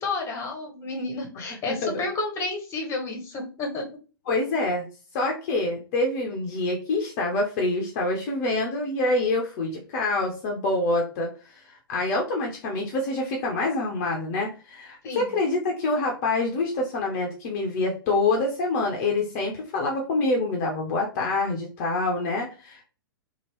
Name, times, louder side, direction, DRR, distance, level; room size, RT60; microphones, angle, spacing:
voice 1, 0.0-3.9 15.0-15.3, left 3 dB, 25° left, 2 dB, 1.0 m, -31 dB
voice 2, 1.7-2.0 4.3-4.9 5.1-22.8, left 2 dB, 40° left, 1 dB, 0.7 m, -26 dB
2.9 x 2.4 x 3.0 m, 0.35 s
figure-of-eight pair, 110°, 12 cm